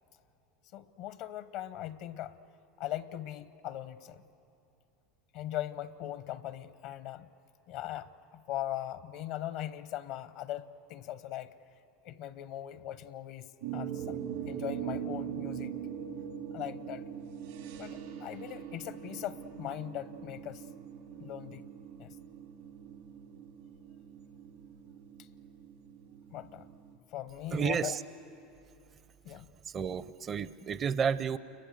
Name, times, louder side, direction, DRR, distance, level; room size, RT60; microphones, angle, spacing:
voice 1, 0.7-2.3 2.8-4.2 5.3-7.3 7.7-11.5 12.0-15.8 16.5-17.1 17.8-20.6 21.2-21.6 22.0-22.1 26.3-26.7 27.1-27.9 29.2-29.5, left 12 dB, 65° left, 15 dB, 0.7 m, -40 dB
sound 1, 13.6-26.9, right 8 dB, 85° right, 3.4 m, -42 dB
voice 2, 27.5-28.0 29.3-31.4, right 7 dB, 35° right, 15 dB, 0.6 m, -32 dB
29.0 x 22.0 x 7.9 m, 2.8 s
hypercardioid pair, 95°, 0 cm